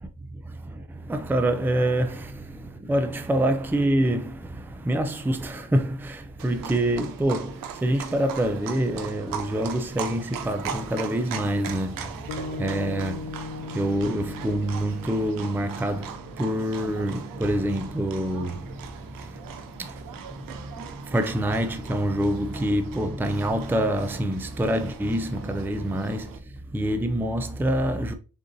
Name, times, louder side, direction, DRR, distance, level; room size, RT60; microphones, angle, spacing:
voice 1, 0.4-26.4 26.7-28.1, right 1 dB, 5° right, 0.5 m, -27 dB
Livestock farm animals working animals, 6.4-26.4, right 8 dB, 70° right, 0.7 m, -40 dB
sound 1, 12.3-16.7, left 3 dB, 85° left, 0.6 m, -38 dB
6.7 x 2.5 x 2.6 m
cardioid pair, 80°, 36 cm